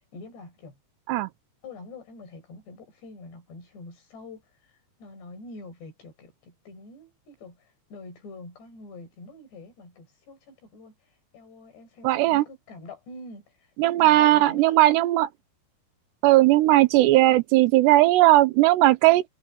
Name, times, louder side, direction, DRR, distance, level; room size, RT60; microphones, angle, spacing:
voice 1, 0.1-0.8 1.6-10.9 11.3-13.4 13.8-14.7, left 3 dB, 80° left, 8.6 m, -45 dB
voice 2, 12.0-12.4 13.8-15.3 16.2-19.2, right 16 dB, 85° right, 3.0 m, -18 dB
omnidirectional pair, 4.8 m